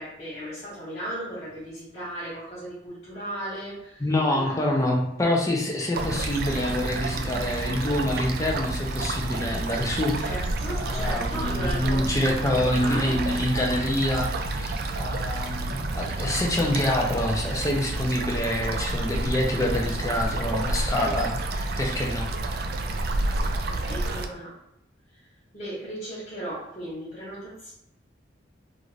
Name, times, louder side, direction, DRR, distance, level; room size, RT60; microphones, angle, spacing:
voice 1, 0.0-4.9 10.2-13.2 23.3-24.6 25.5-27.7, right 1 dB, 40° left, -10 dB, 1.1 m, -36 dB
voice 2, 4.0-10.1 10.7-22.3, left 1 dB, 15° left, -1 dB, 0.5 m, -26 dB
sound 1, 5.9-24.3, right 2 dB, 55° right, 0.3 m, -29 dB
2.5 x 2.5 x 3.1 m, 0.80 s
head